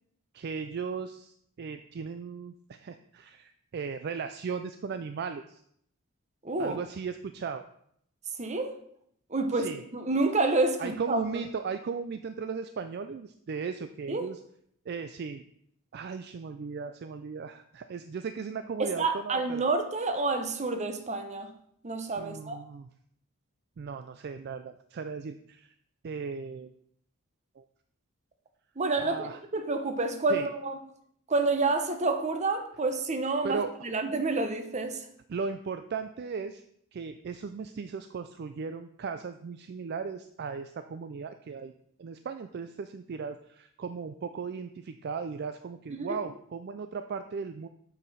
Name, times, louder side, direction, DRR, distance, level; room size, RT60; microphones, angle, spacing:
voice 1, 0.3-5.6 6.6-7.6 9.5-9.8 10.8-14.4 14.9-15.4 15.9-19.6 22.2-22.9 23.8-25.7 26.0-26.7 27.6-27.7 29.0-29.4 30.3-30.5 33.4-33.7 35.3-36.6 36.9-41.7 42.0-47.7, right 5 dB, 50° right, 9 dB, 0.4 m, -36 dB
voice 2, 6.4-6.8 8.4-8.7 9.3-11.2 14.1-14.3 18.8-21.5 21.8-22.6 28.8-29.2 29.5-30.8 31.3-35.0 46.0-46.2, right 3 dB, 35° right, 7 dB, 0.8 m, -28 dB
8.0 x 4.8 x 5.5 m, 0.69 s
head